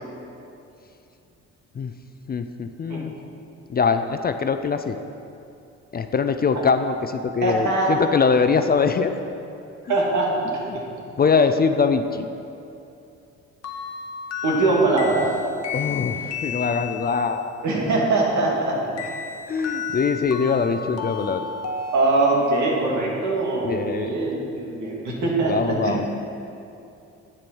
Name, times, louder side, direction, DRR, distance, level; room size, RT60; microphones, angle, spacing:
voice 1, 2.3-3.1 3.7-5.0 5.9-9.1 11.2-12.3 15.7-17.5 19.5-21.5 23.6-24.1 25.5-26.1, left 5 dB, 30° left, 8 dB, 0.5 m, -22 dB
voice 2, 7.4-8.0 9.9-10.8 14.4-15.3 17.6-18.7 21.9-26.0, right 2 dB, 70° right, -3 dB, 2.4 m, -22 dB
sound 1, 13.6-17.4 19.0-22.7, left 6 dB, 55° left, 1.1 m, -33 dB
8.7 x 7.5 x 6.2 m, 2.7 s
cardioid pair, 90°, 30 cm